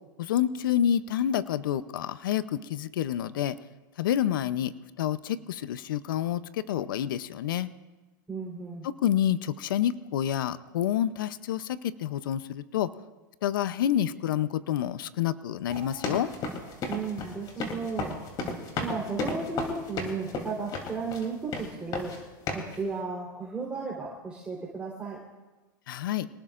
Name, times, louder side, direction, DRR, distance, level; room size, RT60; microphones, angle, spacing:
voice 1, 0.2-3.6 4.0-4.7 5.0-7.7 8.8-12.9 13.4-16.3 25.9-26.3, left 10 dB, 80° left, 15 dB, 0.7 m, -28 dB
voice 2, 8.3-8.8 16.9-18.2 18.8-22.1 22.5-25.2, right 4 dB, 10° right, -4 dB, 3.8 m, -34 dB
sound 1, 15.6-16.8, right 10 dB, 55° right, 2.2 m, -49 dB
sound 2, 15.7-21.3 21.5-22.2 22.5-22.8, left 3 dB, 40° left, 3.2 m, -33 dB
26.5 x 19.0 x 2.5 m, 1.2 s
hypercardioid pair, 125°, 11 cm